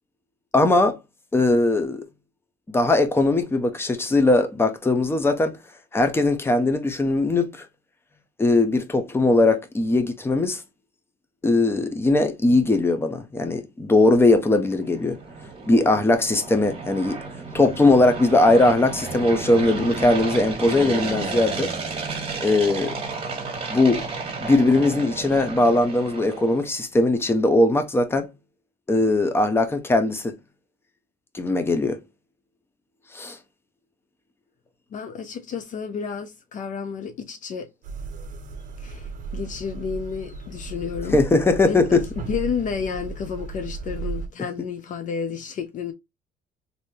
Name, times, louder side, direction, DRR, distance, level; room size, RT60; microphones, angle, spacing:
voice 1, 0.5-1.0 1.3-2.0 2.7-5.6 5.9-7.7 8.4-10.6 11.4-15.2 15.6-17.2 17.5-21.7 22.4-22.9 23.7-24.0 24.4-28.3 28.9-30.4 31.3-32.0 33.1-33.4 41.1-42.0, left 2 dB, 15° left, 0.7 m, -20 dB
sound 1, 14.4-26.7, right 4 dB, 35° right, 1.3 m, -32 dB
voice 2, 34.9-37.7 38.8-41.2 41.6-45.9, left 6 dB, 50° left, 0.5 m, -31 dB
sound 2, 37.8-44.3, right 4 dB, 50° right, 0.7 m, -35 dB
3.3 x 2.7 x 2.7 m
cardioid pair, 110°, 17 cm